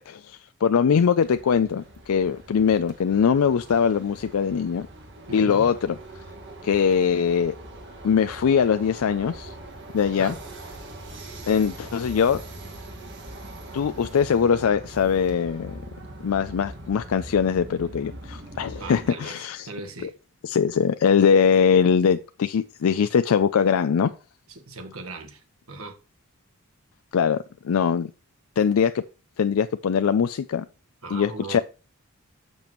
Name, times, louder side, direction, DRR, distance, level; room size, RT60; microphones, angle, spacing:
voice 1, 0.1-4.9 5.3-5.9 6.6-7.5 8.0-9.5 9.9-10.3 11.5-12.4 13.7-15.8 16.2-19.7 20.0-20.1 20.4-24.1 27.1-27.4 27.6-28.1 28.6-29.0 29.4-30.6 31.1-31.6, left 7 dB, 90° left, 0.4 m, -22 dB
sound 1, 1.2-19.1, right 1 dB, 55° right, 1.8 m, -42 dB
voice 2, 5.3-5.7 10.2-10.4 18.8-20.1 24.5-25.4 25.7-26.0 31.0-31.6, right 2 dB, 90° right, 1.5 m, -38 dB
10.5 x 6.9 x 3.0 m
head